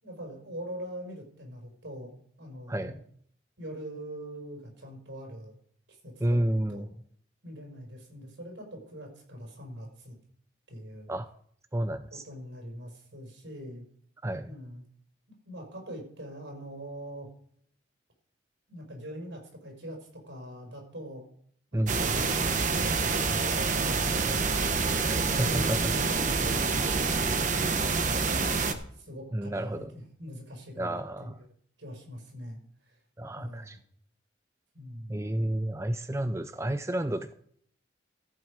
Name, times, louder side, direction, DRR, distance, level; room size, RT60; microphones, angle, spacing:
voice 1, 0.0-3.0 3.6-5.6 5.9-6.9 7.4-10.2 10.7-11.1 12.1-13.8 14.4-14.8 15.5-17.3 18.7-21.3 21.7-22.4 22.7-24.4 24.8-26.9 27.5-28.1 28.4-31.5 31.8-32.6 32.9-33.0 33.3-33.8 34.7-35.2, equal, 85° right, 1 dB, 5.3 m, -43 dB
voice 2, 6.2-6.9 11.1-11.3 11.7-12.2 14.2-14.6 21.7-22.1 25.1-25.9 29.3-29.9 30.8-31.4 33.2-33.8 35.1-37.3, right 1 dB, 15° right, 10 dB, 0.4 m, -31 dB
sound 1, 21.9-28.7, right 4 dB, 40° right, 1.0 m, -27 dB
14.5 x 8.3 x 5.0 m, 0.62 s
head